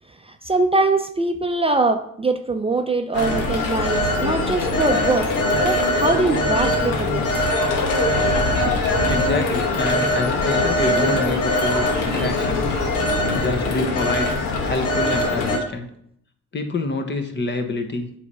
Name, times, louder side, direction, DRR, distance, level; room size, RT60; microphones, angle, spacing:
voice 1, 0.2-5.3 5.6-7.4 9.0-9.1, right 3 dB, 20° right, 6 dB, 0.5 m, -22 dB
Telephone, 3.1-15.6, left 2 dB, 85° left, 1.6 m, -21 dB
voice 2, 9.1-12.7 13.3-14.3 14.6-15.9 16.5-18.1, left 2 dB, 35° left, 6 dB, 1.1 m, -26 dB
8.2 x 3.4 x 5.4 m, 0.70 s
cardioid pair, 90°, 30 cm